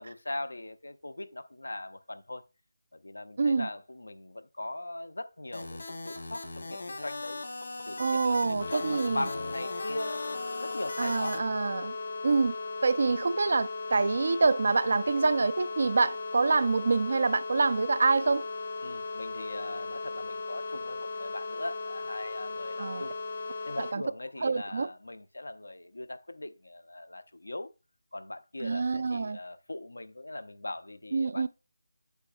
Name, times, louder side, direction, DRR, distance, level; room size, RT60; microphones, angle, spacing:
voice 1, 0.0-2.4 2.9-7.4 7.9-11.4 18.8-23.2 23.6-27.7 28.1-31.5, left 2 dB, 85° left, 0.7 m, -40 dB
voice 2, 3.4-3.7 8.0-9.2 11.0-11.9 12.2-12.6 12.8-18.4 22.8-23.0 23.8-24.0 24.4-24.9 28.6-29.4 31.1-31.5, right 4 dB, 55° right, 0.5 m, -26 dB
sound 1, 5.5-11.4, left 2 dB, 65° left, 1.5 m, -40 dB
sound 2, 8.6-23.9, left 3 dB, 45° left, 0.6 m, -37 dB
8.2 x 6.1 x 2.6 m
figure-of-eight pair, 165°, 0 cm